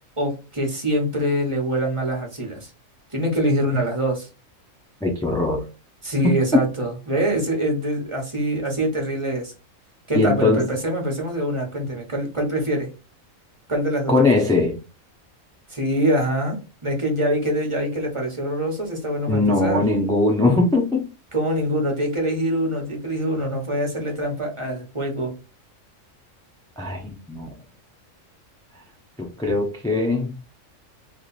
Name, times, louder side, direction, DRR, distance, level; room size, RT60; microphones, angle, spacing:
voice 1, 0.2-2.7 3.1-4.3 6.0-9.5 10.1-12.9 13.7-14.1 15.7-19.8 21.3-25.3, right 1 dB, 25° right, 1 dB, 1.1 m, -24 dB
voice 2, 5.0-5.6 6.2-6.4 10.1-10.6 14.1-14.8 19.3-21.0 26.8-27.5 28.7-28.8 29.2-30.3, left 2 dB, 5° left, -1 dB, 0.4 m, -20 dB
3.2 x 2.5 x 4.0 m, 0.30 s
omnidirectional pair, 1.4 m